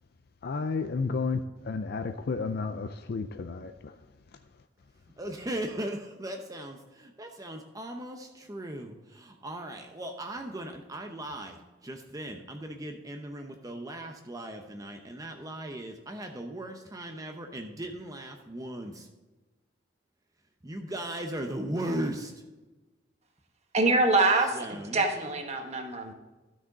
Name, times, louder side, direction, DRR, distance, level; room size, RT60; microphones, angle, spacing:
voice 1, 0.4-4.0, left 4 dB, 55° left, 7 dB, 0.4 m, -32 dB
voice 2, 5.2-19.1 20.6-22.3 24.5-25.3, right 1 dB, 20° right, 4 dB, 0.7 m, -38 dB
voice 3, 23.7-26.1, right 2 dB, 35° right, 4 dB, 1.2 m, -25 dB
13.0 x 6.1 x 4.0 m, 1.2 s
head